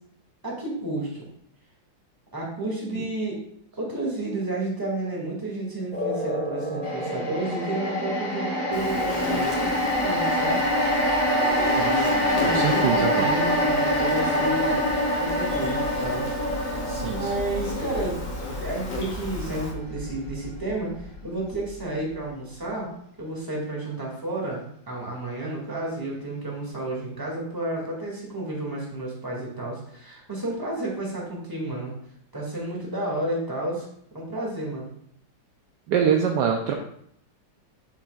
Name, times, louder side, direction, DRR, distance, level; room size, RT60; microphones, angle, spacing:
voice 1, 0.4-1.3 2.3-3.4 3.7-10.6 12.3-18.2 18.5-22.9 23.2-31.9 32.3-33.9 34.1-34.9, right 2 dB, 10° right, -3 dB, 1.9 m, -31 dB
sound 1, 5.9-12.9, equal, 5° left, 1.9 m, -36 dB
sound 2, 6.8-21.2 21.5-21.7, equal, 85° left, 3.9 m, -26 dB
Insect, 8.7-19.7, left 2 dB, 35° left, 0.8 m, -35 dB
voice 2, 11.8-13.3 16.8-17.3 35.9-36.7, right 7 dB, 70° right, 3 dB, 1.1 m, -25 dB
7.8 x 7.1 x 2.4 m, 0.69 s
omnidirectional pair, 2.2 m